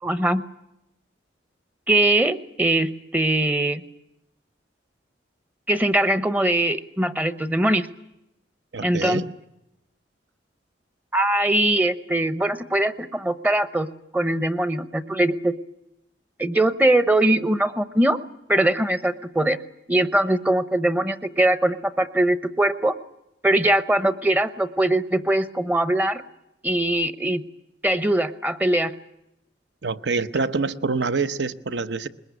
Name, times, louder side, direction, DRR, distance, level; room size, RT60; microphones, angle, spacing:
voice 1, 0.0-0.4 1.9-3.8 5.7-7.9 8.8-9.2 11.1-13.9 14.1-15.5 16.4-18.2 18.5-19.6 19.9-22.9 23.4-26.2 26.6-27.4 27.8-28.9, right 1 dB, 10° right, 12 dB, 0.8 m, -21 dB
voice 2, 8.7-9.3 29.8-32.1, right 4 dB, 65° right, 12 dB, 0.9 m, -26 dB
21.5 x 21.0 x 9.5 m, 0.85 s
head